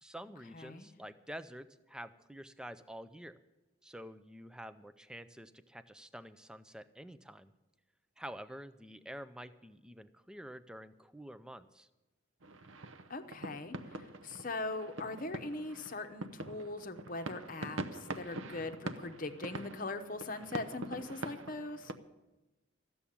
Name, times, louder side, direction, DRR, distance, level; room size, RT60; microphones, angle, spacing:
voice 1, 0.0-3.4 3.8-7.5 8.2-11.9, equal, 5° right, 12 dB, 0.4 m, -48 dB
voice 2, 0.5-0.9 13.1-21.9, left 2 dB, 40° left, 7 dB, 0.8 m, -41 dB
sound 1, 12.4-22.0, right 2 dB, 65° right, 0.7 m, -44 dB
14.0 x 7.1 x 10.0 m, 1.0 s
head